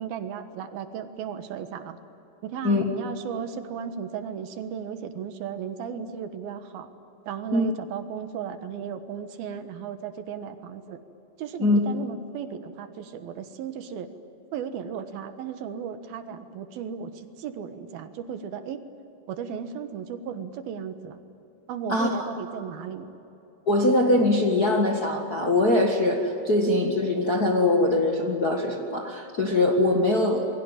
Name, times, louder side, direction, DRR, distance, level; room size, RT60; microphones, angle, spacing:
voice 1, 0.0-2.0 2.4-6.9 7.3-11.0 11.4-14.1 14.5-18.9 19.3-21.2 21.7-23.1, right 7 dB, 75° right, 8 dB, 3.2 m, -35 dB
voice 2, 21.9-22.3 23.7-30.5, left 2 dB, 35° left, 0 dB, 1.6 m, -22 dB
28.5 x 22.0 x 9.1 m, 2.9 s
omnidirectional pair, 4.3 m